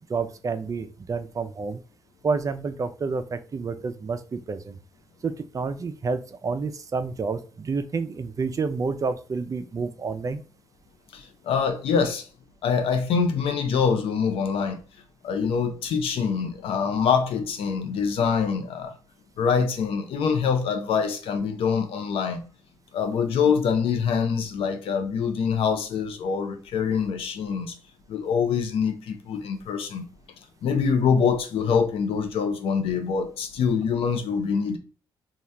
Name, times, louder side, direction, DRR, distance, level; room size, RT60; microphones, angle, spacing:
voice 1, 0.1-1.8 2.2-4.8 5.2-10.4, right 4 dB, 35° right, 0.4 m, -29 dB
voice 2, 11.1-12.3 12.6-14.8 15.2-18.9 19.4-22.4 22.9-27.7 28.1-30.1 30.6-34.8, left 6 dB, 75° left, 0.6 m, -25 dB
2.7 x 2.3 x 3.3 m
supercardioid pair, 65°, 10 cm